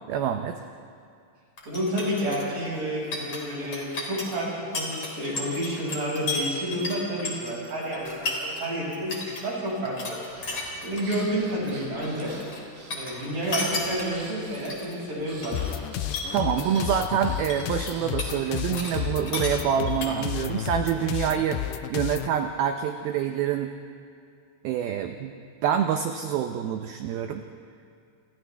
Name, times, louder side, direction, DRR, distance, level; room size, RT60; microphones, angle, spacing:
voice 1, 0.1-0.6 16.3-21.6 21.9-23.7 24.6-25.3 25.6-27.4, right 9 dB, 85° right, 6 dB, 2.1 m, -26 dB
sound 1, 1.6-8.7 8.9-9.4 9.7-11.2 11.5-12.6 12.9-15.0 15.3-15.8 16.1-17.0 17.3-18.9 19.2-20.4, left 2 dB, 30° left, 3.6 m, -34 dB
voice 2, 1.7-10.2 10.8-12.4 12.9-15.7 16.5-16.7, equal, 45° right, -5 dB, 7.3 m, -30 dB
Breathing, 10.3-19.2, right 2 dB, 70° right, 6.4 m, -48 dB
sound 2, 15.5-22.3, left 12 dB, 85° left, 2.2 m, -32 dB
28.5 x 28.0 x 3.4 m, 2.4 s
omnidirectional pair, 5.3 m